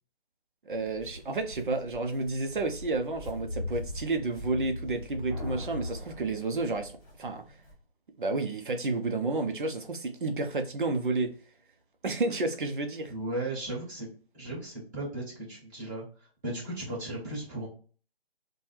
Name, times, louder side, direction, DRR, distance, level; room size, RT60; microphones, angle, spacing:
voice 1, 0.6-7.4 8.2-11.4 12.0-13.1, right 3 dB, 55° right, 0.7 m, -31 dB
Walk footsteps, 0.7-7.7, left 1 dB, 20° left, 1.2 m, -41 dB
sound 1, 5.3-7.3, left 2 dB, 35° left, 0.7 m, -45 dB
voice 2, 13.1-14.1 14.3-16.0 16.4-17.7, right 1 dB, 20° right, 1.6 m, -36 dB
3.3 x 2.3 x 4.3 m
figure-of-eight pair, 150°, 31 cm